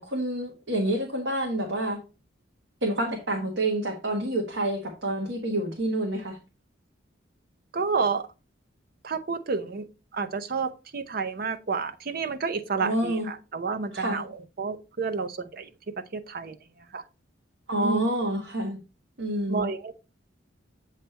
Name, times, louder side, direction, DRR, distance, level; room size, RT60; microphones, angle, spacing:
voice 1, 0.0-2.0 2.8-6.4 12.8-13.3 13.9-14.2 17.7-18.8 19.2-19.7, right 1 dB, 65° right, 1.4 m, -28 dB
voice 2, 7.7-8.3 9.0-9.9 10.1-15.7 16.1-16.6 16.9-17.0 17.8-18.1 19.5-19.9, right 5 dB, 50° right, 0.6 m, -30 dB
7.9 x 3.3 x 4.3 m
head